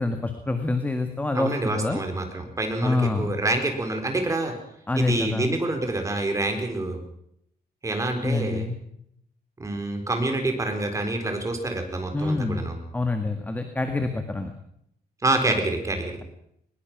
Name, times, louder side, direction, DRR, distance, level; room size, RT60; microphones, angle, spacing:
voice 1, 0.0-2.0 2.8-3.3 4.9-5.5 8.2-8.8 12.1-14.5, left 2 dB, 10° left, 6 dB, 1.7 m, -26 dB
voice 2, 1.3-4.5 5.0-7.0 7.8-8.7 9.6-12.8 15.2-16.2, right 2 dB, 20° right, 5 dB, 4.0 m, -27 dB
21.5 x 21.0 x 6.1 m, 0.73 s
wide cardioid pair, 165°, 17 cm